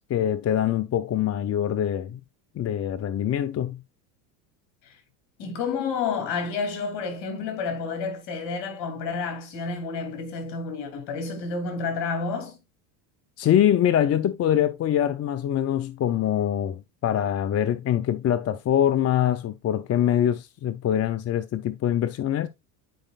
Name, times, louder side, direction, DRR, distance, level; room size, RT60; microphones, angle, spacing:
voice 1, 0.1-2.2 2.6-3.8 13.4-22.5, left 10 dB, 30° left, 0.5 m, -24 dB
voice 2, 5.4-12.6, left 4 dB, 55° left, 3.1 m, -30 dB
10.0 x 5.0 x 2.4 m
hypercardioid pair, 85°, 49 cm